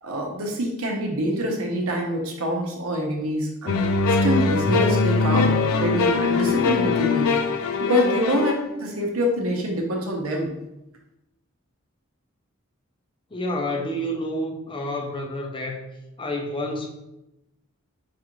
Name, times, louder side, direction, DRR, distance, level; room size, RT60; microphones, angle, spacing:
voice 1, 0.0-3.8 4.2-7.3 7.8-10.5, equal, 80° right, 1 dB, 0.8 m, -25 dB
sound 1, 3.7-8.6, left 4 dB, 85° left, 0.4 m, -22 dB
voice 2, 13.3-16.9, left 1 dB, 25° left, 2 dB, 0.5 m, -29 dB
4.7 x 2.5 x 3.0 m, 0.91 s
head